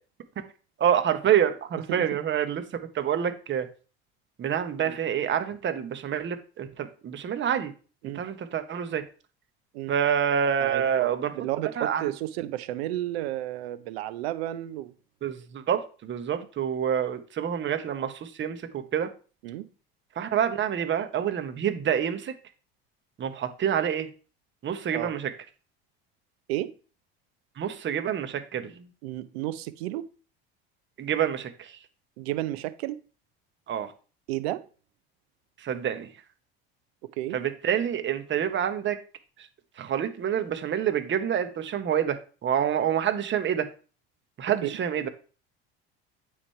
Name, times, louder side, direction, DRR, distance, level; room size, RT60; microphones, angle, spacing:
voice 1, 0.8-2.6 2.9-3.7 4.4-7.7 8.1-9.0 9.9-11.3 11.8-12.0 15.2-19.1 20.2-22.3 23.2-24.1 24.6-25.3 27.6-28.9 31.0-31.7 33.7-33.9 35.6-36.1 37.3-39.0 39.8-43.7 44.4-45.1, right 9 dB, 40° right, 1.1 m, -27 dB
voice 2, 10.6-14.9 19.4-19.7 24.9-25.1 26.5-26.7 29.0-30.1 32.2-33.0 34.3-34.6 37.0-37.4 44.6-44.8, right 15 dB, 80° right, 0.7 m, -32 dB
8.6 x 3.3 x 4.4 m
hypercardioid pair, 85°, 31 cm